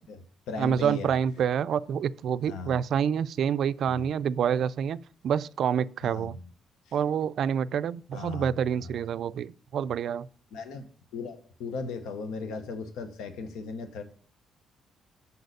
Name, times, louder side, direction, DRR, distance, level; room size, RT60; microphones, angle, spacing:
voice 1, 0.0-1.1 2.4-2.8 3.9-4.0 6.0-6.5 6.9-7.0 8.1-8.5 10.5-14.0, left 4 dB, 90° left, 0.8 m, -37 dB
voice 2, 0.6-6.4 6.9-10.3, right 8 dB, 65° right, 0.3 m, -27 dB
7.0 x 4.1 x 6.4 m
cardioid pair, 90°, 0 cm